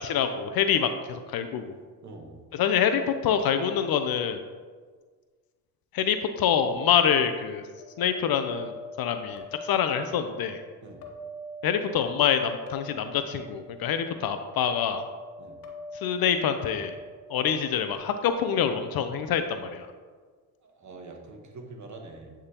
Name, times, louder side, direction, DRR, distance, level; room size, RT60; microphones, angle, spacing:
voice 1, 0.0-1.8 2.5-4.4 5.9-7.6 8.0-8.7 9.0-10.6 11.6-15.0 16.0-16.9 17.3-19.9, left 8 dB, 50° left, 8 dB, 0.6 m, -26 dB
voice 2, 2.0-2.4 10.8-11.0 15.4-15.6 20.6-22.3, right 3 dB, 35° right, 2 dB, 1.3 m, -44 dB
sound 1, 7.8-18.3, left 1 dB, 90° left, 0.8 m, -44 dB
9.4 x 3.7 x 2.9 m, 1.5 s
hypercardioid pair, 60°, 48 cm